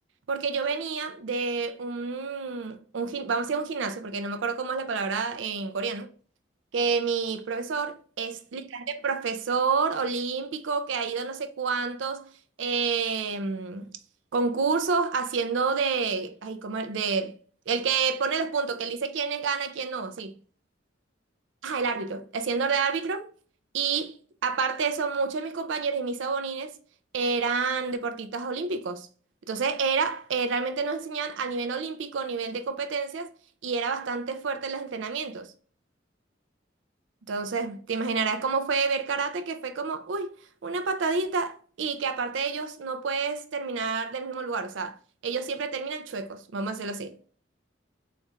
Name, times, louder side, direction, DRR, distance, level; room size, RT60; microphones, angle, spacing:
voice 1, 0.3-6.1 6.7-12.3 12.6-13.9 14.3-17.3 17.7-20.4 21.6-23.3 23.7-26.8 27.1-29.1 29.5-33.3 33.6-35.5 37.3-40.3 40.6-45.0 45.2-47.2, right 5 dB, 80° right, 0.5 m, -29 dB
4.2 x 2.4 x 3.2 m
head